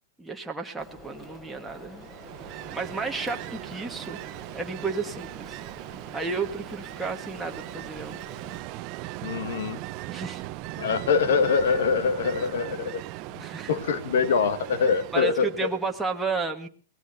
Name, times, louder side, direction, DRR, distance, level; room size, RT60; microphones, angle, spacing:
voice 1, 0.2-2.1 2.5-4.2 4.5-5.6 6.1-8.2 10.1-10.4 13.4-13.7 15.1-16.7, right 4 dB, 5° right, 1 dB, 1.5 m, -32 dB
Rain, 0.8-8.6, equal, 20° left, 6.2 m, -47 dB
Ocean, 1.9-16.0, right 17 dB, 35° right, 0.8 m, -39 dB
voice 2, 9.2-9.8 10.8-13.0 13.3-15.7, left 5 dB, 70° left, 12 dB, 1.8 m, -24 dB
23.5 x 19.0 x 2.7 m, 0.38 s
hypercardioid pair, 150°, 0 cm